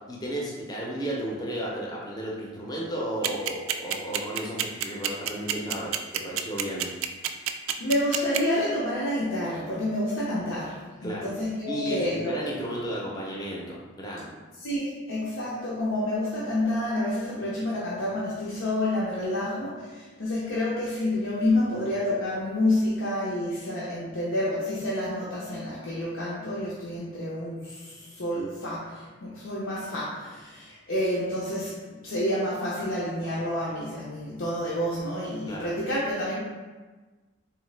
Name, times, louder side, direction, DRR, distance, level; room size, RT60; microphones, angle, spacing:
voice 1, 0.1-6.9 11.0-11.3 11.7-14.3 35.5-35.7, right 1 dB, 20° left, -3 dB, 0.6 m, -33 dB
sound 1, 3.2-8.4, right 11 dB, 85° right, 0.3 m, -27 dB
voice 2, 7.8-10.7 11.0-12.3 14.6-36.4, left 1 dB, 75° left, -7 dB, 0.7 m, -29 dB
3.7 x 3.0 x 3.3 m, 1.3 s
head